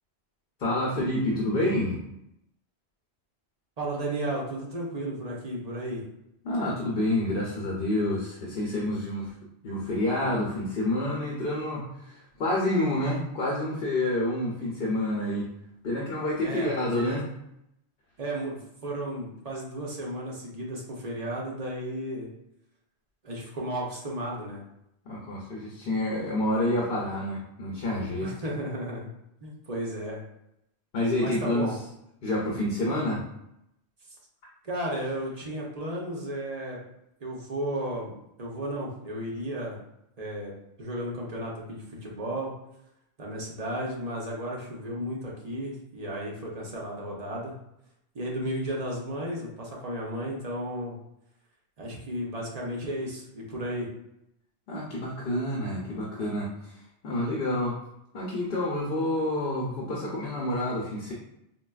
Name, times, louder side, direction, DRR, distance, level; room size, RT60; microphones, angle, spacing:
voice 1, 0.6-2.0 6.4-9.3 9.6-15.5 15.8-17.3 25.0-28.3 30.9-31.7 32.2-33.2 48.4-48.6 54.7-56.8 57.0-57.8 58.1-61.1, left 1 dB, 60° left, -4 dB, 0.8 m, -28 dB
voice 2, 3.8-6.0 16.4-16.7 16.9-17.2 18.2-22.3 23.2-24.6 28.2-29.1 29.4-30.2 31.2-31.7 34.6-36.8 37.2-38.1 38.4-39.8 40.2-40.5 40.8-42.5 43.2-47.5 48.1-51.0 51.8-53.9, right 1 dB, 40° right, -3 dB, 0.7 m, -34 dB
3.9 x 2.2 x 2.3 m, 0.81 s
omnidirectional pair, 1.1 m